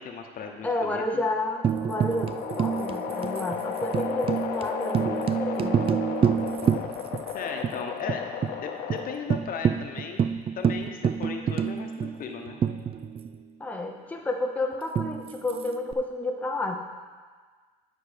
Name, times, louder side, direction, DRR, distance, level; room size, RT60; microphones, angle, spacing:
voice 1, 0.0-1.2 7.3-8.3 8.6-10.2 10.6-12.6, left 6 dB, 55° left, 4 dB, 1.0 m, -36 dB
voice 2, 0.6-6.2 13.6-16.8, left 2 dB, 10° left, 1 dB, 0.8 m, -31 dB
sound 1, 1.4-9.4, left 6 dB, 85° left, 0.9 m, -34 dB
Tambourine, 1.6-7.3 7.6-7.7 8.1-8.6 8.9-9.0 9.3-13.4 15.0-15.9, right 8 dB, 35° right, 0.3 m, -28 dB
11.0 x 4.7 x 5.1 m, 1.5 s
cardioid pair, 110°, 17 cm